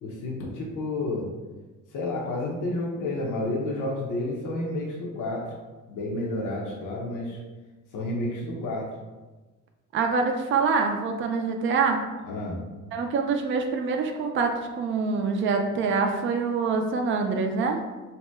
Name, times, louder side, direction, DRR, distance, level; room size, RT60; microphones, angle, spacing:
voice 1, 0.0-1.3 1.9-5.5 5.9-7.4 7.9-8.8 12.2-12.6, left 2 dB, 80° left, -2 dB, 0.7 m, -30 dB
voice 2, 9.9-12.0 12.9-17.8, right 4 dB, 45° right, 4 dB, 0.4 m, -25 dB
2.8 x 2.1 x 3.3 m, 1.2 s
cardioid pair, 90°, 30 cm